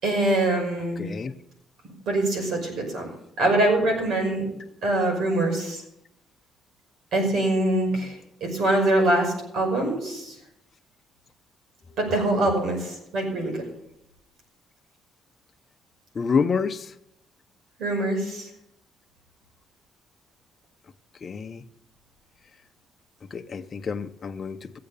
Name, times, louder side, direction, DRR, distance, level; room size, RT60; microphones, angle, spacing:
voice 1, 0.0-1.0 2.1-3.1 3.4-4.5 4.8-5.8 7.1-10.3 12.0-13.6 17.8-18.5, right 1 dB, 75° right, 2 dB, 5.6 m, -24 dB
voice 2, 1.0-1.3 16.1-16.9 21.2-21.6 23.3-24.8, left 5 dB, 40° left, 5 dB, 0.8 m, -28 dB
15.5 x 7.8 x 6.9 m, 0.80 s
cardioid pair, 90°, 0 cm